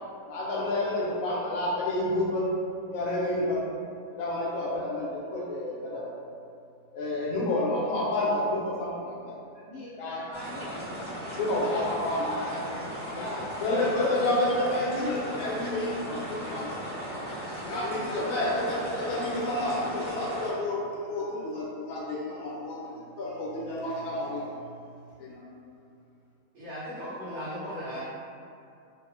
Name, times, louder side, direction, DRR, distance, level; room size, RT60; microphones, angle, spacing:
voice 1, 0.3-2.5 2.9-3.6 4.1-6.1 6.9-9.4 10.0-10.2 11.3-12.6 13.1-13.3 13.6-16.7 17.7-24.5 25.2-25.5, left 1 dB, 70° left, -5 dB, 0.9 m, -29 dB
voice 2, 9.5-10.9 12.0-12.9 17.6-18.6 18.9-19.1, left 1 dB, 30° left, -12 dB, 0.9 m, -43 dB
sound 1, 10.3-20.5, equal, 25° right, 0.9 m, -37 dB
voice 3, 26.5-28.0, equal, 70° right, -13 dB, 1.2 m, -37 dB
2.9 x 2.0 x 2.4 m, 2.4 s
omnidirectional pair, 1.6 m